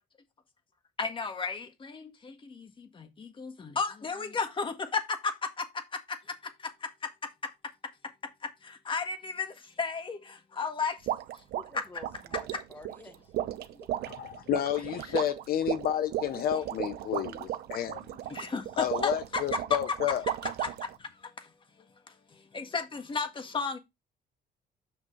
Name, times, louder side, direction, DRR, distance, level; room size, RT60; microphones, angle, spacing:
voice 1, 1.0-7.5 8.4-11.0 11.3-11.4 11.7-11.8 12.5-12.6 18.3-19.6 20.1-20.2 20.4-21.5 22.1-23.8, left 4 dB, 30° left, 1.6 m, -34 dB
sound 1, 11.1-21.0, right 12 dB, 70° right, 0.8 m, -35 dB
voice 2, 11.5-13.5 13.8-13.9, left 2 dB, 10° left, 1.4 m, -50 dB
voice 3, 14.1-18.1 18.8-20.2, left 10 dB, 65° left, 0.8 m, -31 dB
7.3 x 6.0 x 3.2 m
cardioid pair, 110°, 17 cm